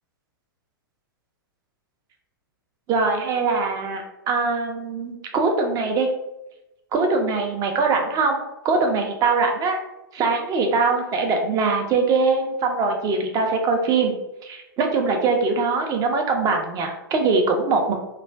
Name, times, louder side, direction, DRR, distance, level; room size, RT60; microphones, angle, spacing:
voice 1, 2.9-6.1 6.9-9.8 10.1-14.1 14.4-17.9, right 4 dB, 30° right, 3 dB, 0.5 m, -22 dB
2.3 x 2.1 x 3.3 m, 0.93 s
hypercardioid pair, 105°, 12 cm